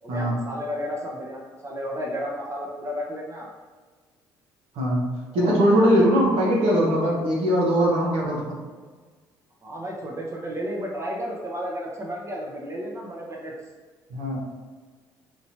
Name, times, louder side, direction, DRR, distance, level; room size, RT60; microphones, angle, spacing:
voice 1, 0.0-3.5 5.3-6.1 9.6-13.5, equal, 25° right, -2 dB, 0.9 m, -33 dB
voice 2, 5.3-8.4 14.1-14.4, equal, 70° right, -4 dB, 1.1 m, -20 dB
4.3 x 2.9 x 2.8 m, 1.4 s
hypercardioid pair, 55°, 11 cm